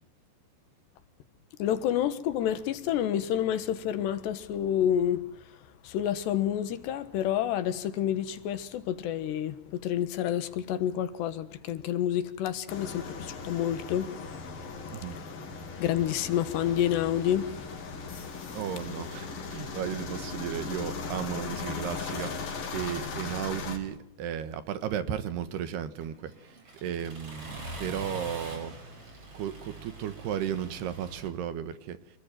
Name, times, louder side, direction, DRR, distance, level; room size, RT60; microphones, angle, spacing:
voice 1, 1.6-5.2 5.8-14.1 15.8-17.5, left 10 dB, 75° left, 3.5 m, -29 dB
sound 1, 12.7-23.8, left 4 dB, 55° left, 5.4 m, -38 dB
voice 2, 18.5-22.3 22.7-26.5 26.8-28.7 29.3-32.0, right 9 dB, 70° right, 3.3 m, -34 dB
Accelerating revving vroom, 26.0-31.3, right 2 dB, 35° right, 5.9 m, -43 dB
28.0 x 20.5 x 9.1 m
omnidirectional pair, 5.1 m